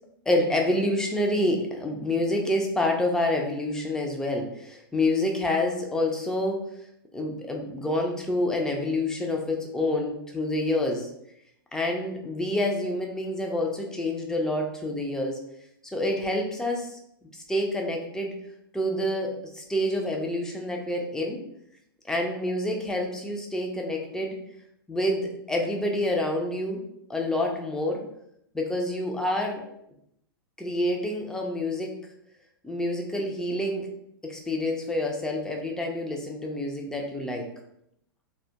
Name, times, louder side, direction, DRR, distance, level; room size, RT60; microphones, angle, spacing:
voice 1, 0.3-6.7 7.1-11.1 11.7-15.4 15.8-17.0 17.3-18.3 18.7-21.4 22.1-24.4 24.9-26.8 27.1-28.0 28.5-29.6 30.6-31.9 32.6-33.9 34.2-37.4, left 1 dB, 5° left, 1 dB, 0.4 m, -27 dB
2.2 x 2.1 x 2.7 m, 0.76 s
hypercardioid pair, 110°, 13 cm